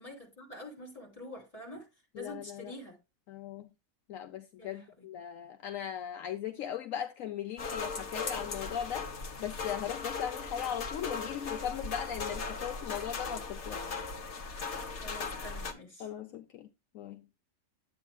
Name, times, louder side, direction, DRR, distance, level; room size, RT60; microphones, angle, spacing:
voice 1, 0.0-1.9 2.2-3.0 4.6-5.1 15.0-16.1, left 1 dB, 25° left, 3.6 m, -46 dB
voice 2, 2.2-2.7 3.3-3.7 4.1-9.1 9.4-14.1 16.0-16.7 16.9-17.3, left 10 dB, 75° left, 1.1 m, -38 dB
sound 1, 7.6-15.7, left 4 dB, 55° left, 1.4 m, -38 dB
11.0 x 8.3 x 2.3 m
omnidirectional pair, 1.5 m